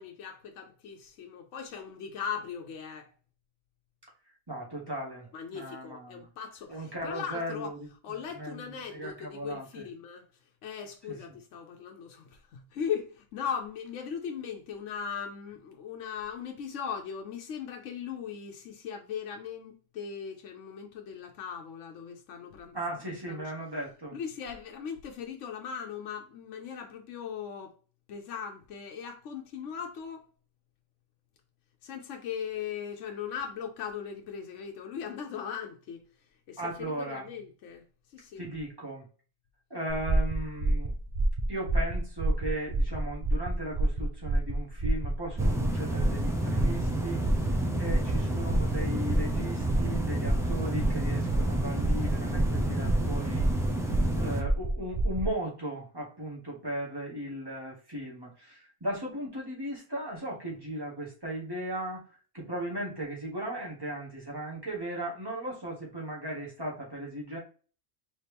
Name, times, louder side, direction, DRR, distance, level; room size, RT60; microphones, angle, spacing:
voice 1, 0.0-3.1 5.3-7.7 8.0-10.3 10.6-22.8 23.1-23.4 24.1-27.8 28.1-30.3 31.8-36.0 36.5-37.8 38.1-38.4, left 7 dB, 75° left, 1.0 m, -39 dB
voice 2, 4.5-6.3 6.7-7.8 8.3-9.9 11.1-11.3 22.7-24.2 36.6-37.3 38.4-39.0 39.7-40.9 41.5-47.3 47.7-53.5 54.1-62.0 62.3-67.4, right 1 dB, 20° right, 1.8 m, -37 dB
sound 1, 39.9-55.3, right 1 dB, 40° right, 0.8 m, -29 dB
sound 2, 45.4-54.4, right 1 dB, 5° right, 0.5 m, -30 dB
4.3 x 3.1 x 3.4 m
omnidirectional pair, 1.3 m